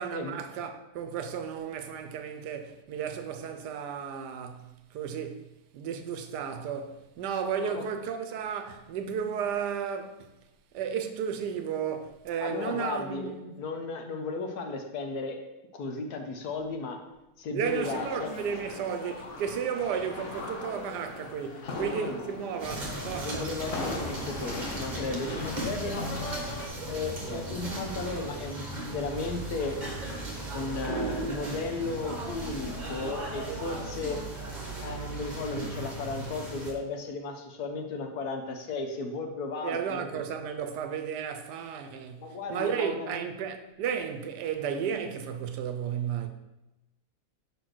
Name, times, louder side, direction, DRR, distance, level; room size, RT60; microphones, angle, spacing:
voice 1, 0.0-5.5 5.7-10.3 10.7-13.6 17.5-23.5 39.6-46.3, right 7 dB, 85° right, 1.3 m, -33 dB
voice 2, 12.4-15.4 15.7-17.0 17.4-18.3 21.6-22.2 23.2-26.0 26.8-29.8 30.5-34.2 34.8-40.2 42.2-43.2, left 3 dB, 75° left, 1.3 m, -35 dB
sound 1, 17.6-26.7, left 3 dB, 55° left, 1.1 m, -39 dB
sound 2, 22.6-36.7, right 1 dB, 30° right, 1.2 m, -36 dB
5.3 x 4.4 x 6.0 m
omnidirectional pair, 1.7 m